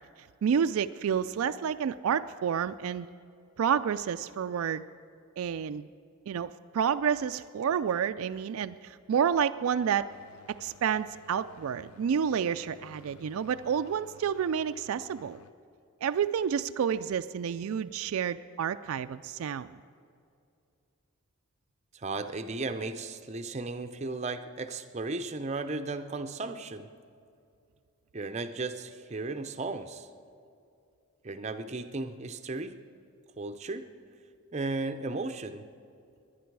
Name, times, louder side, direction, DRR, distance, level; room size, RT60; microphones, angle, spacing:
voice 1, 0.4-3.1 3.6-4.9 5.4-5.9 6.3-10.1 10.5-15.4 16.0-19.8, right 7 dB, 75° right, 11 dB, 0.3 m, -29 dB
sound 1, 10.1-15.5, left 6 dB, 90° left, 0.7 m, -56 dB
voice 2, 21.9-26.9 28.1-30.1 31.2-32.8 33.4-33.9 34.5-35.6, right 3 dB, 30° right, 9 dB, 0.6 m, -35 dB
21.5 x 10.5 x 4.7 m, 2.5 s
head